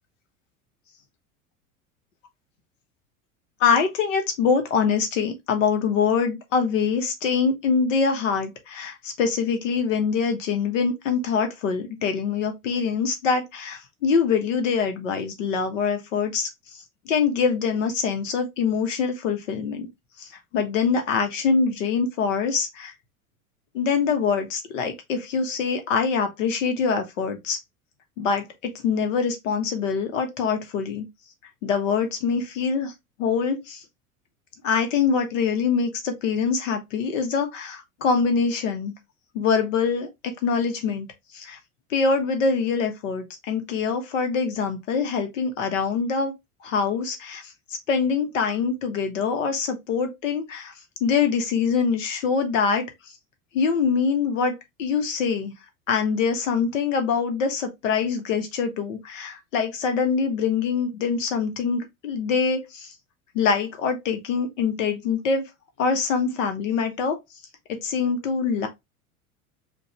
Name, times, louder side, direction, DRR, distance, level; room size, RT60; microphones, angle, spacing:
voice 1, 3.6-16.5 17.0-19.9 20.2-22.9 23.7-27.6 28.2-31.0 31.6-32.9 33.2-33.8 34.6-38.9 39.3-41.1 41.3-41.6 41.9-46.3 46.6-47.5 47.9-50.7 51.0-52.9 53.5-55.5 55.9-62.9 63.3-65.4 65.8-67.2 67.7-68.7, left 5 dB, 60° left, 1.3 m, -24 dB
5.2 x 2.6 x 3.1 m
figure-of-eight pair, 80°, 43 cm